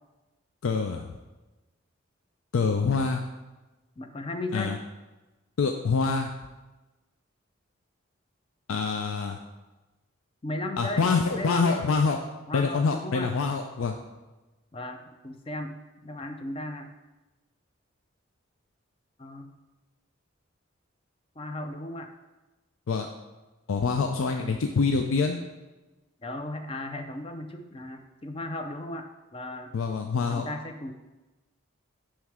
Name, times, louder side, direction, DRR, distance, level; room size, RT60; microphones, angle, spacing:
voice 1, 0.6-1.1 2.5-3.2 4.5-4.8 5.6-6.3 8.7-9.4 10.8-12.2 12.5-13.9 22.9-23.1 23.7-25.4 29.7-30.5, left 4 dB, 90° left, 4 dB, 0.5 m, -25 dB
voice 2, 4.0-4.8 10.4-11.9 12.5-13.3 14.7-15.8 16.0-16.9 19.2-19.5 21.4-22.1 26.2-29.7 30.3-30.9, left 1 dB, 25° left, 6 dB, 0.5 m, -36 dB
9.3 x 3.2 x 4.8 m, 1.1 s
head